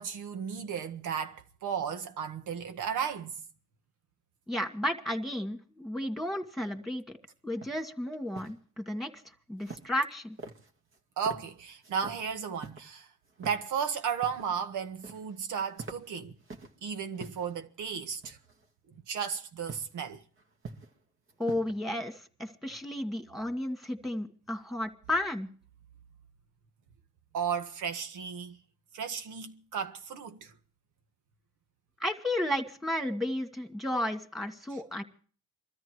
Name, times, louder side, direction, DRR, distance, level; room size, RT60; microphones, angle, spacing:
voice 1, 0.0-3.4 11.2-13.1 13.4-16.3 16.8-18.4 19.1-20.2 27.3-28.6 28.9-30.5 34.7-34.8, right 7 dB, 80° right, 1.7 m, -34 dB
voice 2, 4.5-7.2 7.4-9.1 9.5-10.4 21.4-25.5 32.0-35.0, left 1 dB, ahead, 2.4 m, -33 dB
sound 1, 7.6-7.8 8.1-8.5 9.6-10.1 10.4-11.0 11.2-11.4 11.8-12.2 12.6-12.8 13.3-13.6 13.9-14.5 14.8-15.4 15.7-16.7 17.1-17.5 18.2-18.7 19.7-19.9 20.4-21.0 21.3-21.8, right 3 dB, 45° right, 2.3 m, -45 dB
22.5 x 13.5 x 4.8 m
cardioid pair, 90°, 30 cm